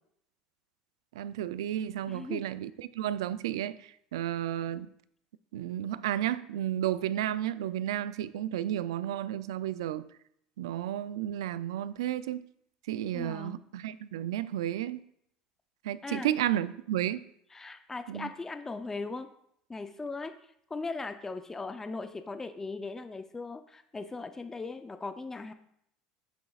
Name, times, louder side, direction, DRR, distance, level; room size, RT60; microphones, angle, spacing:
voice 1, 1.2-4.9 5.5-10.1 10.6-12.4 12.9-15.0 15.8-17.2 18.1-18.3, right 12 dB, 85° right, 16 dB, 0.3 m, -32 dB
voice 2, 2.1-2.4 13.1-13.6 16.0-16.3 17.5-19.3 19.7-20.4 20.7-25.5, left 3 dB, 15° left, 9 dB, 0.5 m, -38 dB
8.7 x 6.8 x 2.4 m, 0.72 s
hypercardioid pair, 85°, 3 cm